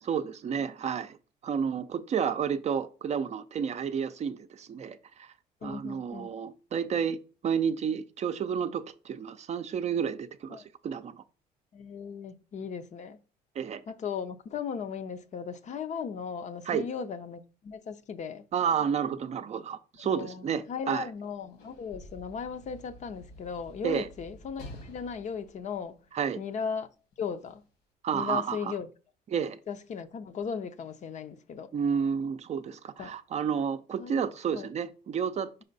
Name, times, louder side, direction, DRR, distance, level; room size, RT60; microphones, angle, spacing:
voice 1, 0.0-1.2 1.4-5.3 5.6-11.2 13.6-13.8 16.7-16.9 18.5-21.1 23.8-24.1 26.1-26.4 28.0-28.7 29.3-29.6 31.7-35.6, right 7 dB, 40° right, 0.5 m, -31 dB
voice 2, 5.6-6.3 10.5-10.6 11.7-13.2 13.9-18.4 20.1-26.0 26.4-26.9 27.2-27.6 28.1-28.9 29.7-31.7 33.0-33.1 34.0-34.7, left 6 dB, 45° left, 0.6 m, -37 dB
Sliding door / Slam, 21.1-26.5 27.4-27.6, left 1 dB, 85° left, 2.0 m, -50 dB
5.5 x 4.3 x 4.0 m
cardioid pair, 110°, 17 cm